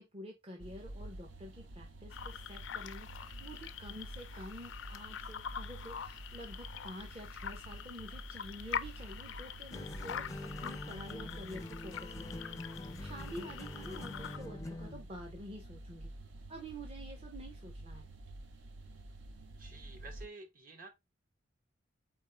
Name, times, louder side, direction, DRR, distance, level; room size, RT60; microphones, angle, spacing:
voice 1, 0.0-16.1 16.5-18.1, equal, 30° right, 0.7 m, -49 dB
sound 1, 0.6-20.3, right 1 dB, 80° right, 0.7 m, -49 dB
sound 2, 2.1-14.4, left 8 dB, 85° left, 0.4 m, -45 dB
sound 3, 9.7-15.0, left 2 dB, 20° left, 0.4 m, -45 dB
voice 2, 19.6-20.9, right 3 dB, 50° right, 1.1 m, -50 dB
4.3 x 3.5 x 3.3 m
head